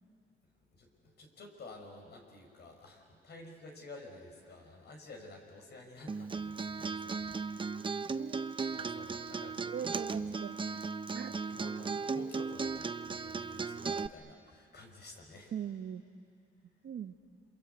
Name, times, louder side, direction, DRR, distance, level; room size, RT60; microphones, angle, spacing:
voice 1, 0.7-7.5 8.7-10.4 11.3-15.5, left 2 dB, 55° left, 3 dB, 5.5 m, -52 dB
Acoustic guitar, 6.1-14.1, right 4 dB, 25° right, 0.7 m, -36 dB
voice 2, 8.1-8.5 9.7-10.8 11.1-11.4 15.5-16.0 16.8-17.1, right 8 dB, 60° right, 10 dB, 1.1 m, -41 dB
27.5 x 26.5 x 8.1 m, 2.5 s
cardioid pair, 90°, 20 cm